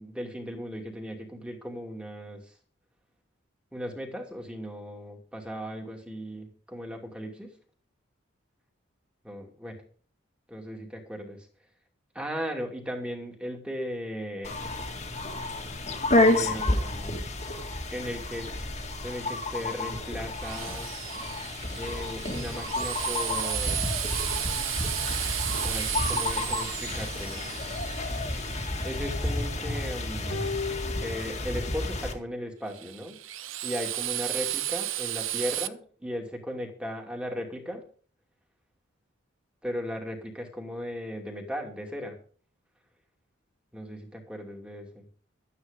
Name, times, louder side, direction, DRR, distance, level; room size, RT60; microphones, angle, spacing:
voice 1, 0.0-2.5 3.7-7.5 9.2-9.8 10.5-11.5 12.1-14.6 16.2-17.3 17.9-18.8 19.0-20.9 21.8-23.8 25.6-27.5 28.8-30.5 31.0-33.2 33.6-37.8 39.6-42.2 43.7-45.0, equal, 5° right, 1 dB, 2.8 m, -37 dB
sound 1, 14.4-32.1, left 1 dB, 35° left, 2.1 m, -30 dB
Drill, 20.3-29.3 32.7-35.7, right 14 dB, 75° right, 0.7 m, -34 dB
sound 2, 30.3-31.9 32.2-32.3, left 4 dB, 65° left, 2.0 m, -36 dB
12.5 x 10.0 x 5.2 m, 0.44 s
head